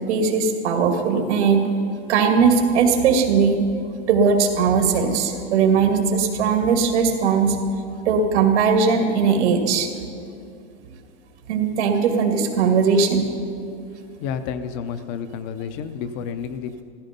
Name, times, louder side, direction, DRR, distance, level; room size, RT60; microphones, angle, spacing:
voice 1, 0.1-1.7 2.1-3.6 4.1-7.6 8.1-9.9 11.5-13.3, right 5 dB, 90° right, 4 dB, 2.3 m, -19 dB
voice 2, 14.2-16.8, left 7 dB, 30° left, 11 dB, 0.5 m, -30 dB
15.0 x 14.0 x 5.2 m, 2.5 s
supercardioid pair, 170°, 33 cm